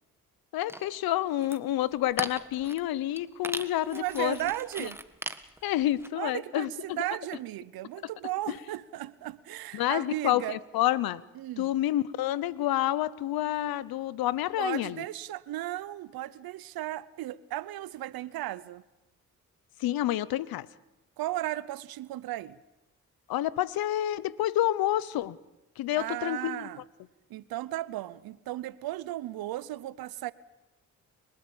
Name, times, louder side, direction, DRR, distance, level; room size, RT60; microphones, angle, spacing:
voice 1, 0.5-4.4 4.8-4.9 5.6-7.0 8.5-8.6 9.7-11.2 11.6-15.0 19.8-20.7 23.3-25.4 25.8-26.7, left 13 dB, 90° left, 0.8 m, -29 dB
sound 1, 0.7-1.0 1.2-1.6 2.0-2.9 3.2-3.3 3.4-6.1, right 1 dB, 5° right, 1.6 m, -38 dB
voice 2, 3.9-5.0 6.2-10.6 11.4-11.7 14.6-18.8 21.2-22.6 26.0-26.8 27.3-30.3, right 15 dB, 85° right, 0.7 m, -35 dB
30.0 x 13.5 x 8.7 m
supercardioid pair, 45°, 35 cm